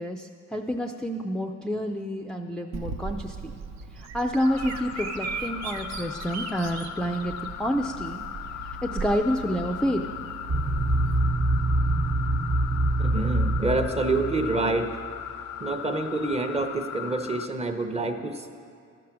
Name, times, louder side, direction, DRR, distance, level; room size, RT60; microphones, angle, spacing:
voice 1, 0.0-3.4 3.9-8.2 8.8-10.1, equal, ahead, 3 dB, 0.4 m, -28 dB
Bird vocalization bird call bird song, 2.7-11.2, right 5 dB, 65° right, 0.6 m, -38 dB
sound 1, 4.4-17.5, left 10 dB, 75° left, 0.5 m, -38 dB
sound 2, 10.5-15.2, right 1 dB, 45° right, 1.1 m, -25 dB
voice 2, 13.0-14.9 15.6-18.5, right 2 dB, 20° right, 6 dB, 0.7 m, -27 dB
12.5 x 4.9 x 6.0 m, 2.4 s
cardioid pair, 90°, 30 cm